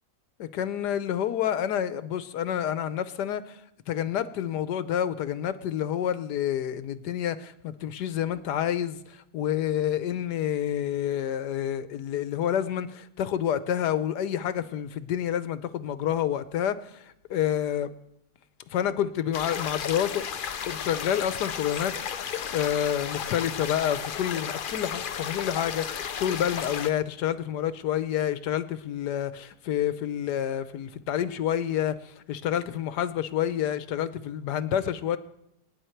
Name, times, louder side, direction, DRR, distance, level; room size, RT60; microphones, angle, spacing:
voice 1, 0.4-3.6 3.9-17.9 18.7-20.2 20.6-21.9 22.5-35.2, left 10 dB, 85° left, 1.4 m, -28 dB
sound 1, 19.3-26.9, left 7 dB, 65° left, 0.5 m, -34 dB
25.5 x 9.8 x 4.5 m
omnidirectional pair, 1.7 m